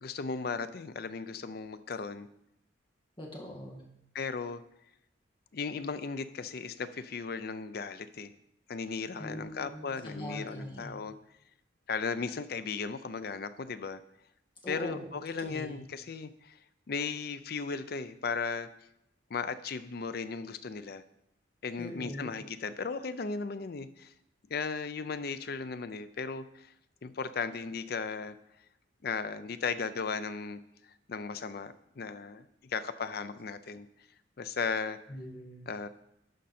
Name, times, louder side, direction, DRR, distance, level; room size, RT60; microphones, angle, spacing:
voice 1, 0.0-2.3 4.1-4.6 5.5-8.3 8.7-11.1 11.9-14.0 14.7-16.6 16.9-18.7 19.3-21.0 21.6-24.1 24.5-26.7 27.0-28.4 29.0-30.6 31.1-33.9 34.4-35.0 35.7-35.9, left 5 dB, 50° left, 13 dB, 0.5 m, -36 dB
voice 2, 3.2-3.8 9.2-10.9 14.6-15.0 15.4-15.8 21.8-22.3 35.1-35.6, left 1 dB, 25° left, -2 dB, 1.9 m, -42 dB
11.5 x 5.2 x 4.3 m, 0.81 s
head